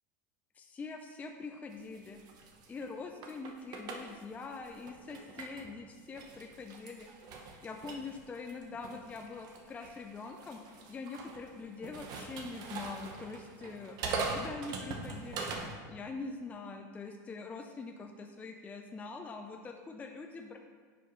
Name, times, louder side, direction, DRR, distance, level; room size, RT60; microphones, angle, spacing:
voice 1, 0.5-2.2 2.7-7.1 7.6-15.5 15.9-20.6, left 4 dB, 15° left, 4 dB, 0.4 m, -44 dB
sound 1, 1.7-5.7 6.1-15.8, right 4 dB, 45° right, 0.9 m, -42 dB
9.6 x 5.0 x 3.1 m, 1.5 s
supercardioid pair, 125°, 9 cm